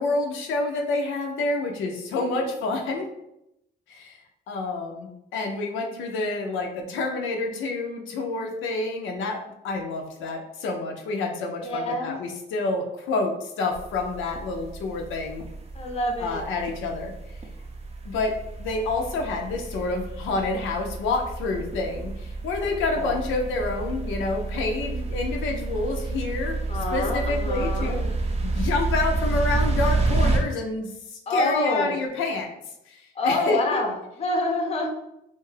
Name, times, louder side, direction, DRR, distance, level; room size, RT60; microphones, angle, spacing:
voice 1, 0.0-3.1 3.9-4.2 4.5-15.4 16.2-17.1 18.0-26.6 26.9-28.1 28.4-32.5 32.9-33.8, left 3 dB, 80° left, 2 dB, 0.5 m, -28 dB
voice 2, 2.1-2.5 11.6-12.2 15.7-16.5 22.6-23.2 26.7-28.0 31.3-32.0 33.1-34.9, left 1 dB, 30° left, 2 dB, 0.6 m, -27 dB
sound 1, 13.7-30.4, right 3 dB, 30° right, 0.5 m, -29 dB
2.5 x 2.3 x 3.1 m, 0.84 s
cardioid pair, 90°, 20 cm